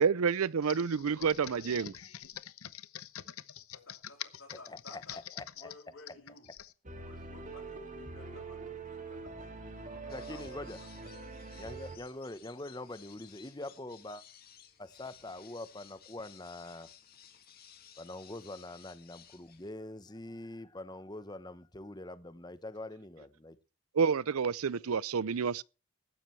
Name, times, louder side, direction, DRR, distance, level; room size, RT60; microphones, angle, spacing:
voice 1, 0.0-1.9 23.9-25.6, right 6 dB, 85° right, 0.5 m, -29 dB
Computer keyboard, 0.6-6.7, left 11 dB, 80° left, 0.8 m, -46 dB
voice 2, 3.7-5.2 5.5-6.5 7.0-11.3, left 2 dB, 65° left, 5.5 m, -55 dB
voice 3, 4.7-5.7 10.1-10.8 11.6-14.2 14.8-16.9 18.0-23.6, left 2 dB, 20° left, 0.9 m, -44 dB
sound 1, 6.8-12.0, right 3 dB, 35° right, 2.4 m, -44 dB
sound 2, 10.1-19.7, left 9 dB, 45° left, 2.1 m, -57 dB
15.0 x 12.0 x 3.3 m
head